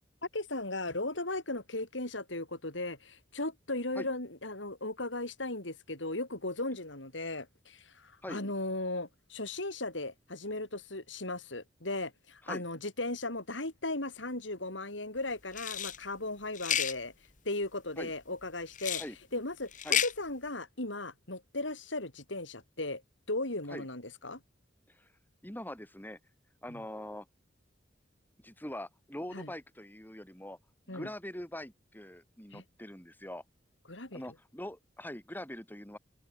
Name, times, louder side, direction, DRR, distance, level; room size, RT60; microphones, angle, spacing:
voice 1, 0.3-17.1 17.4-19.0 19.3-19.7 20.0-23.0 23.3-24.4 26.7-26.8 29.3-29.5 30.9-31.1 32.5-32.6 33.9-34.2, left 2 dB, 80° left, 6.4 m, -37 dB
sound 1, 15.5-16.0 16.5-16.9 18.7-19.1 19.7-20.1, left 9 dB, 45° left, 2.2 m, -31 dB
voice 2, 25.4-26.2 26.6-27.3 28.4-30.6 30.9-33.4 34.1-36.0, left 1 dB, 10° left, 4.4 m, -43 dB
open air
head